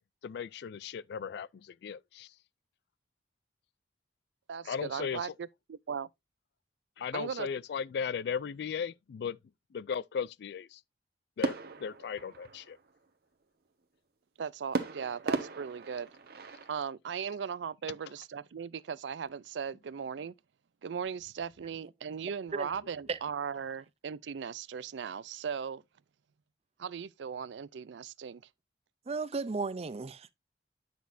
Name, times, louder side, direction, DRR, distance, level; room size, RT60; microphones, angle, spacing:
voice 1, 0.2-2.3 4.7-5.2 7.0-9.4 9.7-10.8 11.4-12.8, left 6 dB, 65° left, 0.3 m, -36 dB
voice 2, 4.5-6.1 7.1-7.5 14.4-16.1 16.7-20.3 20.8-25.8 26.8-28.4, right 7 dB, 90° right, 0.4 m, -38 dB
sound 1, 11.4-13.0 14.7-16.8, right 3 dB, 60° right, 1.1 m, -36 dB
voice 3, 29.1-30.3, right 4 dB, 35° right, 0.5 m, -34 dB
9.4 x 6.2 x 2.6 m
head